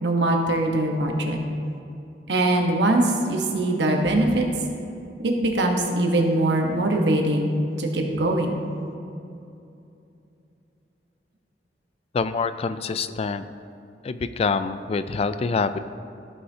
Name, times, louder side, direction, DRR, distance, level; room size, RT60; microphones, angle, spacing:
voice 1, 0.0-1.4 2.3-4.4 5.2-8.5, right 1 dB, 75° right, 2 dB, 1.1 m, -22 dB
voice 2, 12.1-13.4 14.0-15.8, left 4 dB, 35° left, 12 dB, 0.3 m, -26 dB
14.5 x 5.6 x 2.8 m, 2.7 s
head